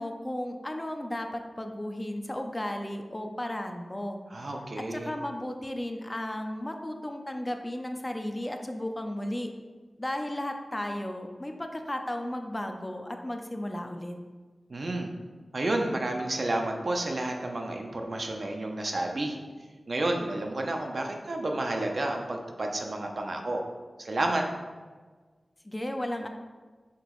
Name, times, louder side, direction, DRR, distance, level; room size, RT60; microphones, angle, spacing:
voice 1, 0.0-4.2 4.8-9.5 10.0-14.2 25.6-26.3, left 1 dB, 25° left, 4 dB, 0.5 m, -34 dB
voice 2, 4.3-5.1 14.7-15.1 15.5-19.4 19.9-23.6 24.0-24.4, right 2 dB, 60° right, 2 dB, 0.6 m, -30 dB
5.8 x 2.9 x 3.0 m, 1.4 s
cardioid pair, 50°, 0 cm